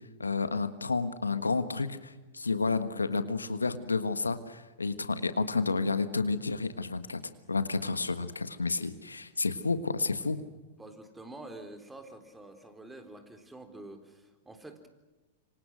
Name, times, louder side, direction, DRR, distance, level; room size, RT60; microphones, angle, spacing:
voice 1, 0.2-7.2 7.5-10.4, left 4 dB, 90° left, 12 dB, 1.4 m, -30 dB
voice 2, 10.8-14.9, right 2 dB, 10° right, 7 dB, 3.9 m, -47 dB
27.0 x 25.0 x 6.3 m, 1.2 s
hypercardioid pair, 100°, 0 cm